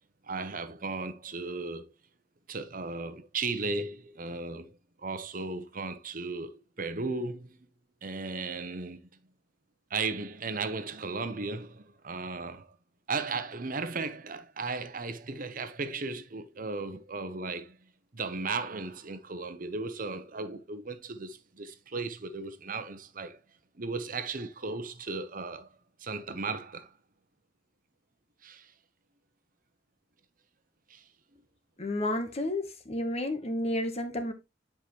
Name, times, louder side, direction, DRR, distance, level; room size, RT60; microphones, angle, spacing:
voice 1, 0.2-1.9 2.5-7.6 8.0-9.0 9.9-12.7 13.1-17.8 18.1-23.4 23.7-25.7 26.0-26.9 28.4-28.7 30.9-31.0, right 3 dB, 45° right, 0.9 m, -36 dB
voice 2, 31.8-34.3, left 1 dB, 35° left, 1.2 m, -31 dB
10.0 x 5.0 x 3.1 m
head